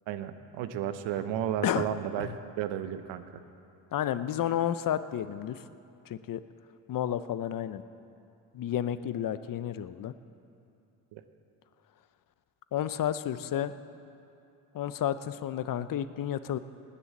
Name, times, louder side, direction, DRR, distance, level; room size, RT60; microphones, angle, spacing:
voice 1, 0.1-2.3 2.6-3.2 11.1-11.2, right 10 dB, 80° right, 11 dB, 0.9 m, -33 dB
voice 2, 3.9-5.6 6.1-6.4 6.9-7.8 8.5-10.1 12.7-13.7 14.7-16.6, left 10 dB, 50° left, 13 dB, 0.7 m, -31 dB
19.0 x 7.0 x 7.3 m, 2.6 s
supercardioid pair, 65°, 44 cm